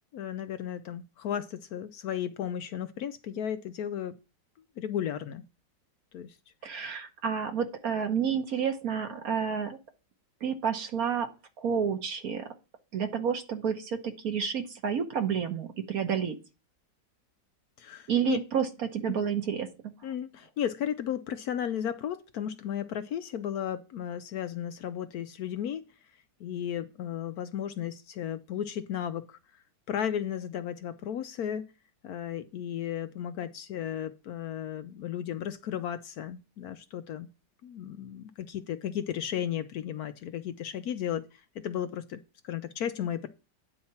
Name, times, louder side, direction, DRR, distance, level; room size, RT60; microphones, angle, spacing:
voice 1, 0.1-4.2 4.8-5.4 6.1-6.3 6.6-6.8 17.8-18.4 20.0-25.9 26.4-29.4 29.9-31.7 32.0-37.3 37.6-43.3, left 9 dB, 70° left, 1.0 m, -34 dB
voice 2, 6.6-9.8 10.4-11.3 11.6-12.5 12.9-16.4 18.1-19.7, right 7 dB, 60° right, 1.4 m, -30 dB
9.5 x 4.3 x 5.7 m
omnidirectional pair, 1.9 m